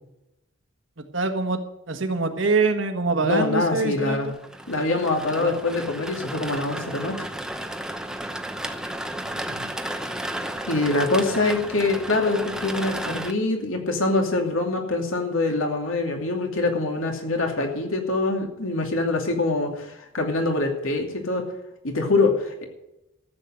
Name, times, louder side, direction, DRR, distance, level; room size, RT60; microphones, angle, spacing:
voice 1, 1.1-1.6 1.9-4.3 5.4-5.6 9.1-9.7, right 3 dB, 65° right, 6 dB, 1.6 m, -25 dB
voice 2, 3.2-4.3 4.7-7.3 10.7-21.5 21.8-22.6, left 2 dB, 75° left, 2 dB, 2.7 m, -24 dB
sound 1, 4.3-13.3, right 1 dB, 5° right, 0.8 m, -33 dB
14.0 x 7.8 x 7.8 m, 0.89 s
head